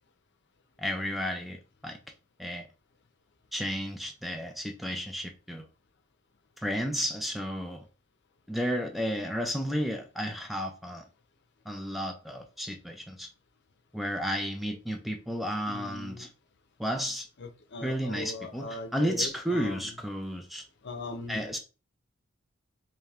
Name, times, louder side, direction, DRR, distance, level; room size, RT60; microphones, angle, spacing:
voice 1, 0.8-1.6 1.8-2.0 2.4-2.7 3.5-5.7 6.6-7.8 8.5-11.1 11.7-13.3 13.9-16.3 16.8-17.3 17.8-20.6 21.3-21.6, equal, ahead, 4 dB, 0.4 m, -32 dB
voice 2, 15.7-16.3 17.4-19.9 20.8-21.5, left 2 dB, 55° left, 7 dB, 0.7 m, -40 dB
3.4 x 3.3 x 3.6 m, 0.32 s
head